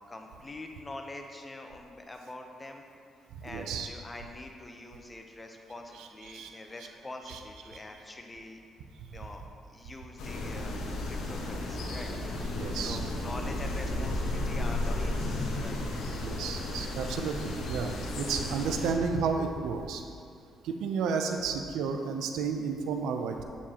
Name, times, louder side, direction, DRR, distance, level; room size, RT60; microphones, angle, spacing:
voice 1, 0.0-2.8 3.4-8.6 9.1-12.4 12.7-15.8, left 2 dB, 20° left, 3 dB, 0.8 m, -45 dB
voice 2, 3.5-3.9 6.0-6.5 7.3-7.4 12.5-13.0 16.2-20.0 20.6-23.4, right 5 dB, 85° right, 5 dB, 0.6 m, -32 dB
sound 1, 10.2-18.9, left 1 dB, 85° left, 1.2 m, -33 dB
8.4 x 7.0 x 3.0 m, 2.4 s
cardioid pair, 90°, 0 cm